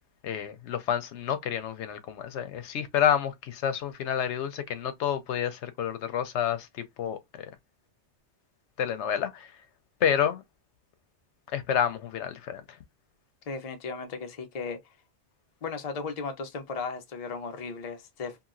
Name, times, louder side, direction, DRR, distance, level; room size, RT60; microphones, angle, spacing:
voice 1, 0.2-7.5 8.8-9.5 10.0-10.4 11.5-12.8, left 9 dB, 85° left, 0.9 m, -29 dB
voice 2, 13.5-14.8 15.6-18.4, left 4 dB, 40° left, 0.6 m, -36 dB
2.9 x 2.6 x 2.5 m
omnidirectional pair, 1.1 m